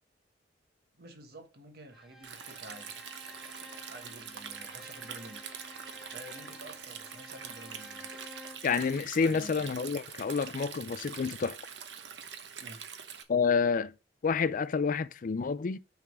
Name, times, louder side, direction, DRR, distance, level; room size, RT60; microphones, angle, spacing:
voice 1, 0.9-3.0 3.9-5.5 6.1-8.1 9.2-9.7 12.6-12.9, right 1 dB, 60° right, 1.3 m, -50 dB
Bowed string instrument, 1.9-8.8, left 1 dB, ahead, 1.0 m, -51 dB
Stream, 2.2-13.2, right 7 dB, 75° right, 0.9 m, -44 dB
voice 2, 8.6-11.6 13.3-13.9 14.2-15.8, left 5 dB, 50° left, 0.4 m, -29 dB
6.3 x 3.6 x 6.0 m
head